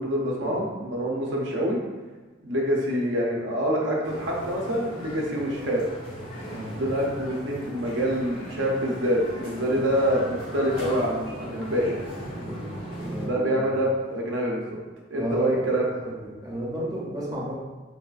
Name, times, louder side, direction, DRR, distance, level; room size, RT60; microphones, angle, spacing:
voice 1, 0.0-1.8 2.4-5.9 6.7-12.0 13.2-14.8 15.1-15.9, equal, 65° right, -2 dB, 0.5 m, -26 dB
sound 1, 4.0-13.3, equal, 80° left, 0.9 m, -38 dB
voice 2, 6.5-6.9 12.4-12.7 13.0-13.6 15.2-15.5 16.1-16.2 16.4-17.5, equal, 20° right, -6 dB, 0.6 m, -32 dB
sound 2, 7.7-14.0 14.4-14.5, equal, 45° left, 0.6 m, -46 dB
4.0 x 2.3 x 2.4 m, 1.3 s
head